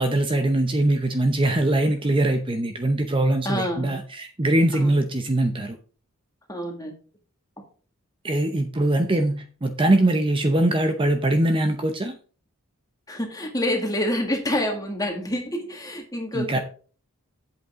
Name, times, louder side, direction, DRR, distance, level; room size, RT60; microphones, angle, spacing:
voice 1, 0.0-5.8 8.2-12.2 16.3-16.6, right 1 dB, 25° right, 6 dB, 0.7 m, -22 dB
voice 2, 3.4-4.0 4.7-4.9 6.5-6.9 7.6-7.7 13.1-16.6, left 1 dB, 15° left, 2 dB, 1.9 m, -27 dB
8.1 x 8.0 x 3.7 m, 0.39 s
head